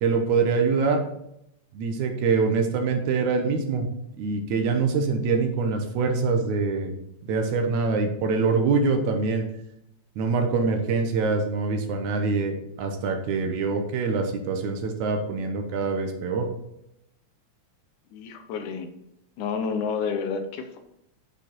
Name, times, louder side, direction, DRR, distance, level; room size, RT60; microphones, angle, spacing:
voice 1, 0.0-1.0 1.7-3.9 4.2-6.9 7.2-9.4 10.2-16.5, right 4 dB, 75° right, 4 dB, 2.3 m, -24 dB
voice 2, 18.1-18.9 19.4-20.8, left 5 dB, 90° left, 7 dB, 2.4 m, -29 dB
8.3 x 5.2 x 4.4 m, 0.81 s
omnidirectional pair, 3.5 m